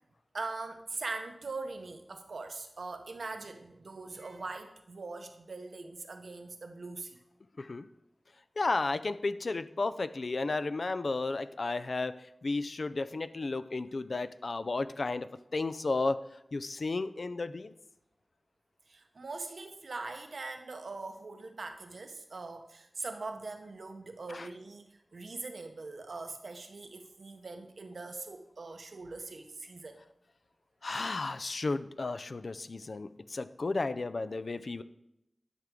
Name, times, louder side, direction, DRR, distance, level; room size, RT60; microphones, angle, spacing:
voice 1, 0.3-7.2 11.6-11.8 18.9-30.0 32.8-32.9, right 3 dB, 75° right, 6 dB, 0.8 m, -42 dB
voice 2, 8.6-12.1 12.4-16.2 16.5-17.7 24.3-24.5 30.8-34.8, left 3 dB, 65° left, 12 dB, 0.4 m, -33 dB
11.0 x 6.0 x 3.6 m, 0.85 s
wide cardioid pair, 60°, 0 cm